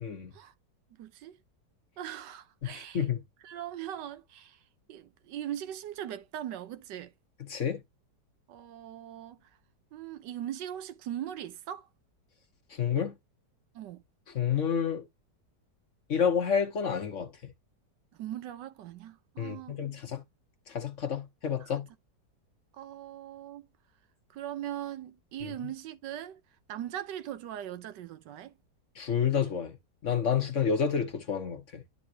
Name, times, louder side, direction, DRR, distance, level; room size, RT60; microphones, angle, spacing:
voice 1, 0.0-0.3 2.6-3.2 7.4-7.8 12.7-13.1 14.3-15.0 16.1-17.3 19.4-20.2 20.7-21.9 25.4-25.5 28.9-29.8 30.0-31.8, left 7 dB, 50° left, 1.3 m, -29 dB
voice 2, 1.0-1.4 2.0-3.0 3.4-4.6 4.9-7.1 8.5-9.4 9.9-11.9 13.7-14.0 18.2-19.8 22.8-23.7 24.3-26.4 26.7-28.5, right 11 dB, 80° right, 1.4 m, -40 dB
11.0 x 4.2 x 2.8 m
omnidirectional pair, 1.9 m